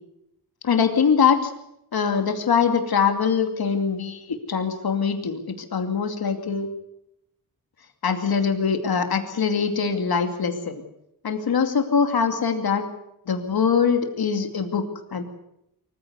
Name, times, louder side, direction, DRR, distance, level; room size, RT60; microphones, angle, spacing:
voice 1, 0.6-1.5 1.9-6.7 8.0-10.8 11.2-12.9 13.3-15.2, left 6 dB, 75° left, 6 dB, 2.6 m, -23 dB
24.5 x 15.5 x 8.1 m, 0.80 s
wide cardioid pair, 165°, 37 cm